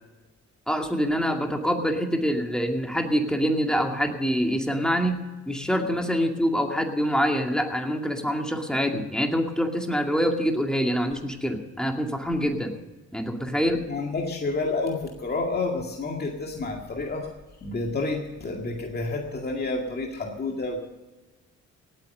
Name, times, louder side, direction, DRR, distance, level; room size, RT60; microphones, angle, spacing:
voice 1, 0.7-5.2 5.5-12.7 13.1-13.8, equal, ahead, 3 dB, 2.3 m, -25 dB
voice 2, 13.7-17.3 17.6-20.8, left 3 dB, 35° left, 1 dB, 2.1 m, -29 dB
18.0 x 8.9 x 6.7 m, 1.2 s
cardioid pair, 90°, 30 cm